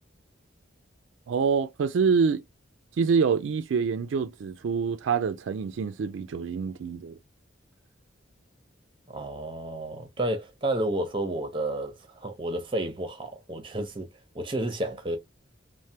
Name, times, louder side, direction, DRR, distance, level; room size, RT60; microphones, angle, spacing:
voice 1, 1.3-2.4 3.0-7.2, right 5 dB, 75° right, 0.3 m, -26 dB
voice 2, 9.1-14.1 14.3-15.2, right 1 dB, 25° right, 0.6 m, -31 dB
3.2 x 2.1 x 2.7 m
head